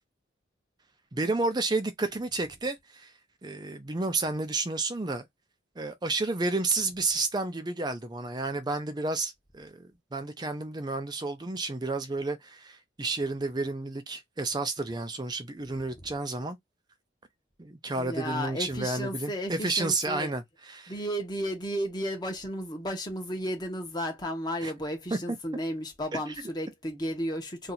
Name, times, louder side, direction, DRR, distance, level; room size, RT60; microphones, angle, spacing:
voice 1, 1.1-3.1 3.4-5.3 5.8-16.6 17.6-20.9 24.6-24.7 25.1-25.4 26.1-26.3, right 3 dB, 20° right, 0.5 m, -31 dB
voice 2, 18.0-20.3 20.9-27.7, equal, 20° left, 1.0 m, -33 dB
2.8 x 2.4 x 4.0 m
head